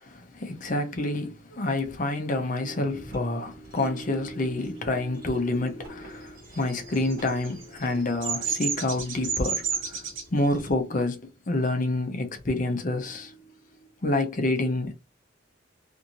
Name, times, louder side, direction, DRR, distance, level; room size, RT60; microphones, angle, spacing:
voice 1, 0.3-13.5 14.0-14.9, left 2 dB, 40° left, 0.6 m, -28 dB
sound 1, 2.6-11.1, right 1 dB, 50° right, 1.3 m, -45 dB
Bird vocalization bird call bird song, 6.5-10.2, right 6 dB, 70° right, 1.0 m, -31 dB
2.6 x 2.5 x 2.8 m
head